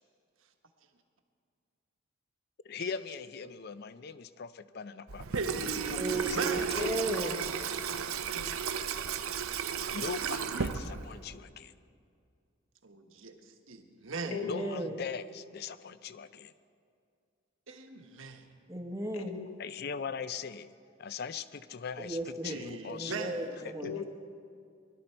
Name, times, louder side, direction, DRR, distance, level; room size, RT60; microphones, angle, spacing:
voice 1, 2.6-6.4 7.3-7.7 9.9-11.7 14.4-16.5 19.6-20.7 21.0-23.3 23.6-23.9, left 6 dB, 50° left, 14 dB, 0.4 m, -41 dB
Water tap faucet / Sink (filling or washing), 5.1-11.4, right 7 dB, 90° right, 0.6 m, -34 dB
voice 2, 5.3-6.9 12.8-14.4 17.7-18.4 22.4-23.5, right 3 dB, 70° right, 4 dB, 1.2 m, -39 dB
voice 3, 6.0-7.4 14.2-15.0 18.7-19.4 22.0-22.6 22.9-24.0, right 2 dB, 15° right, 3 dB, 0.8 m, -35 dB
voice 4, 6.8-7.4 7.9-8.5 14.3-14.7 19.1-19.6 23.8-24.0, left 6 dB, 75° left, 7 dB, 0.9 m, -39 dB
21.0 x 12.0 x 4.5 m, 2.3 s
head